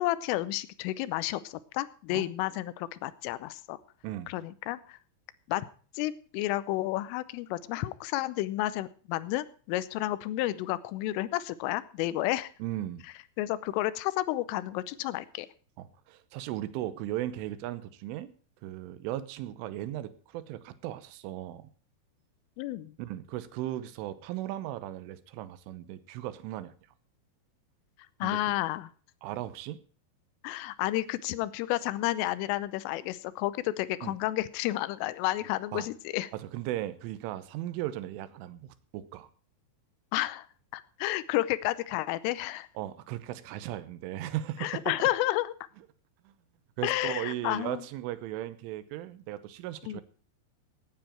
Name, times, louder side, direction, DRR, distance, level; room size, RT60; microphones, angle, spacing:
voice 1, 0.0-3.8 4.3-5.0 5.5-5.7 5.9-12.5 13.4-15.5 22.6-22.9 28.2-28.9 30.4-36.3 40.1-40.5 40.7-42.7 44.6-45.5 46.8-47.9 49.9-50.0, left 16 dB, 85° left, 17 dB, 3.3 m, -31 dB
voice 2, 12.6-13.1 15.8-18.3 18.6-21.7 23.0-26.7 28.2-28.4 29.2-29.8 34.0-34.1 35.7-35.9 36.3-39.3 42.8-45.1 46.3-46.4 46.8-50.0, right 13 dB, 80° right, 14 dB, 3.4 m, -37 dB
16.5 x 9.7 x 4.4 m, 0.41 s
omnidirectional pair, 5.6 m